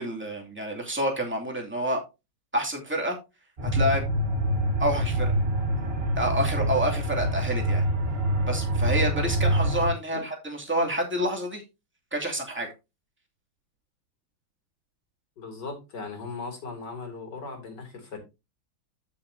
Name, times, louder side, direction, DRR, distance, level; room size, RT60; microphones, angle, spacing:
voice 1, 0.0-2.0 2.5-3.2 3.7-4.0 4.8-5.3 6.2-7.8 8.5-11.6 12.1-12.7, right 1 dB, 5° right, 2.3 m, -28 dB
sound 1, 3.6-9.9, right 1 dB, 35° right, 1.6 m, -25 dB
voice 2, 15.4-18.2, left 4 dB, 65° left, 3.4 m, -38 dB
14.5 x 5.7 x 2.7 m
omnidirectional pair, 2.1 m